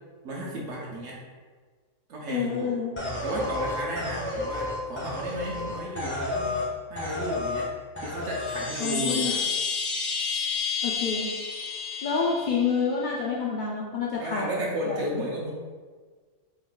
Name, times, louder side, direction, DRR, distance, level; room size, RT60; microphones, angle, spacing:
voice 1, 0.2-1.2 2.1-2.8 3.2-6.5 6.9-7.7 8.0-9.4 14.2-15.5, right 1 dB, 65° right, -3 dB, 0.9 m, -33 dB
voice 2, 2.3-2.9 8.8-9.3 10.8-11.3 12.0-15.2, left 5 dB, 80° left, -3 dB, 0.4 m, -28 dB
sound 1, 3.0-6.7 7.0-7.7 8.0-8.7, left 2 dB, 15° left, 0.5 m, -31 dB
Chime, 8.2-12.9, left 5 dB, 65° left, 0.9 m, -30 dB
3.7 x 2.5 x 3.7 m, 1.5 s
omnidirectional pair, 1.4 m